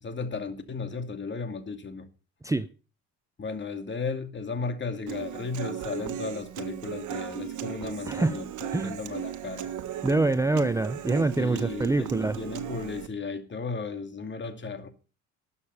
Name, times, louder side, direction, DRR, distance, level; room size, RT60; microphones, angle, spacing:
voice 1, 0.0-2.1 3.4-9.7 11.4-14.9, left 4 dB, 35° left, 2.4 m, -35 dB
Human voice / Acoustic guitar, 5.1-13.1, right 10 dB, 65° right, 1.6 m, -36 dB
voice 2, 8.1-8.4 8.7-9.0 10.0-12.4, right 2 dB, 10° right, 0.6 m, -25 dB
12.5 x 7.0 x 8.2 m
cardioid pair, 90°, 33 cm